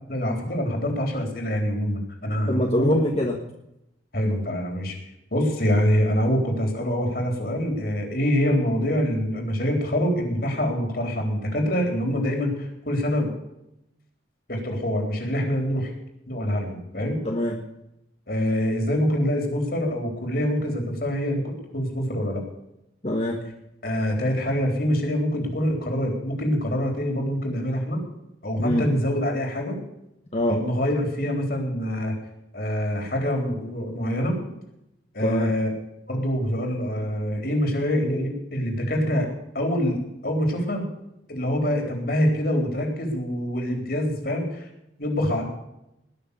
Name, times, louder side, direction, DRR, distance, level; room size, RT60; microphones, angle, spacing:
voice 1, 0.1-2.9 4.1-5.0 5.3-13.3 14.5-15.9 16.3-17.2 18.3-22.4 23.8-28.0 28.4-29.8 30.5-32.1 32.5-34.5 35.1-35.7 36.1-39.3 39.5-40.8 41.3-44.7 45.0-45.4, equal, 50° left, 2 dB, 3.9 m, -25 dB
voice 2, 2.5-3.3 17.2-17.5 23.0-23.4 28.6-28.8 30.3-30.6 35.2-35.5, left 1 dB, 35° left, 1 dB, 1.4 m, -23 dB
20.0 x 6.8 x 7.0 m, 0.85 s
head